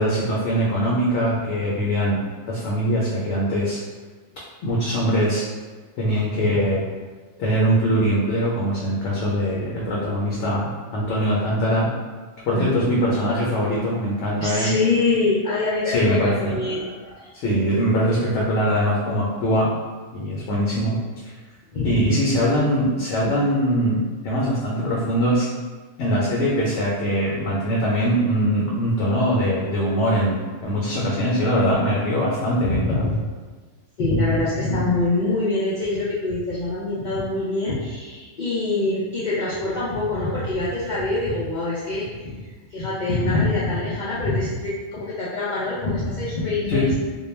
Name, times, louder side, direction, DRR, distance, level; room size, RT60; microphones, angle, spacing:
voice 1, 0.0-2.2 2.5-3.8 4.6-5.4 6.0-6.8 7.4-11.9 12.4-14.7 15.8-16.6 17.3-19.7 20.1-21.3 21.8-25.5 26.0-33.0 46.7-46.9, equal, 70° left, -5 dB, 0.8 m, -22 dB
voice 2, 14.4-17.3 21.7-22.0 32.7-33.1 34.0-42.3 42.7-46.9, left 2 dB, 85° left, -8 dB, 0.4 m, -24 dB
2.3 x 2.1 x 3.1 m, 1.4 s
omnidirectional pair, 1.3 m